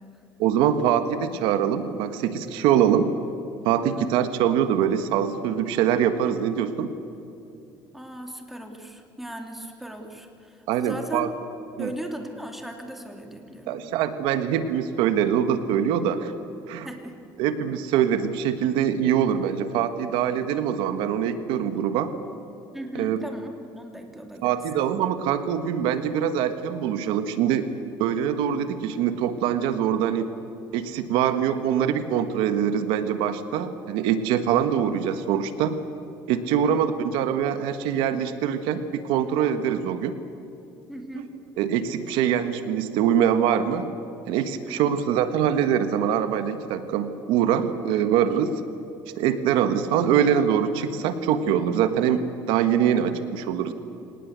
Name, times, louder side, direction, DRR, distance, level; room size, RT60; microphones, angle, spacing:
voice 1, 0.4-3.1 3.6-6.9 10.7-11.3 11.8-11.9 13.7-16.3 16.7-16.9 17.4-22.1 22.9-23.2 24.4-27.7 28.0-30.3 30.7-35.7 36.3-40.1 41.1-41.3 41.6-43.9 44.3-48.5 49.2-52.2 52.5-53.7, right 9 dB, 85° right, 10 dB, 1.5 m, -23 dB
voice 2, 7.9-11.3 11.8-13.8 16.8-17.1 22.7-24.5 36.6-36.8 40.9-41.3 44.6-45.0, right 1 dB, 5° right, 3 dB, 2.8 m, -37 dB
25.5 x 19.0 x 8.1 m, 2.8 s
cardioid pair, 130°, 8 cm